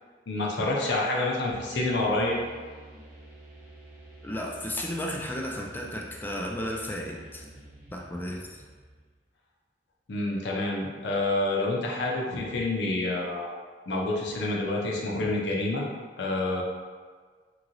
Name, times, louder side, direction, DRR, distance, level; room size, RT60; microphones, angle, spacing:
voice 1, 0.3-2.4 10.1-13.5 13.9-15.8 16.2-16.6, left 2 dB, 65° left, -2 dB, 0.6 m, -28 dB
sound 1, 1.5-9.2, right 1 dB, 50° right, 0.8 m, -49 dB
voice 2, 4.2-7.5 7.9-8.5, left 1 dB, 10° left, -1 dB, 0.3 m, -33 dB
3.0 x 2.8 x 2.6 m, 1.6 s
head